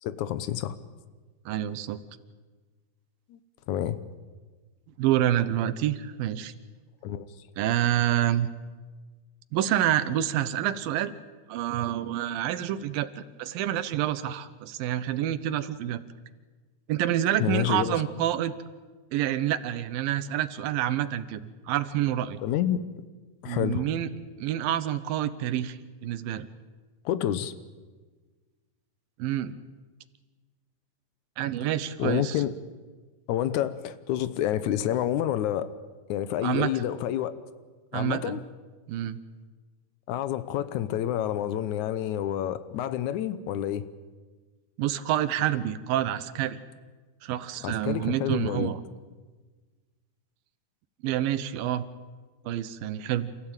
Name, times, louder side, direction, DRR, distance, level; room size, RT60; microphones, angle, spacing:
voice 1, 0.0-0.8 3.3-3.4 3.7-4.0 7.0-7.3 17.4-18.0 22.4-22.8 23.4-23.8 27.1-27.5 32.0-32.5 33.3-35.7 36.1-37.4 37.9-38.4 40.1-43.8 47.6-48.7, left 11 dB, 70° left, 14 dB, 2.1 m, -28 dB
voice 2, 1.5-2.0 5.0-6.5 7.6-8.5 9.5-11.1 11.5-16.0 16.9-18.5 19.1-21.4 21.7-22.4 23.4-24.1 24.4-26.5 29.2-29.5 31.4-32.4 36.4-36.7 37.9-38.4 38.9-39.2 44.8-46.6 47.2-48.8 51.0-51.9 52.5-53.3, right 12 dB, 85° right, 13 dB, 2.7 m, -27 dB
29.0 x 15.0 x 8.9 m, 1.4 s
omnidirectional pair, 4.0 m